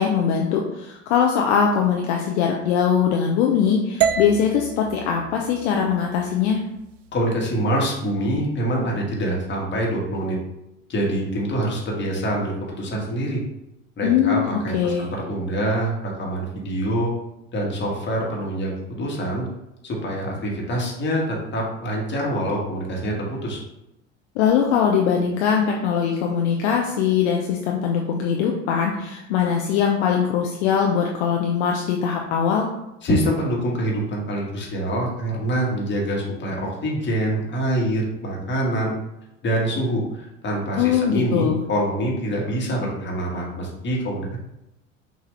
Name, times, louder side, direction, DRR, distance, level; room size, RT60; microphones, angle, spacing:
voice 1, 0.0-6.6 14.0-15.1 24.4-32.7 40.8-41.6, left 7 dB, 55° left, 1 dB, 0.6 m, -21 dB
sound 1, 4.0-8.1, right 7 dB, 70° right, 0.5 m, -30 dB
voice 2, 7.1-10.4 10.9-13.4 14.0-17.1 17.5-19.5 19.8-23.6 33.0-38.9 39.4-44.4, right 1 dB, 30° left, -2 dB, 1.5 m, -25 dB
6.0 x 2.6 x 3.2 m, 0.88 s
figure-of-eight pair, 70°, 39 cm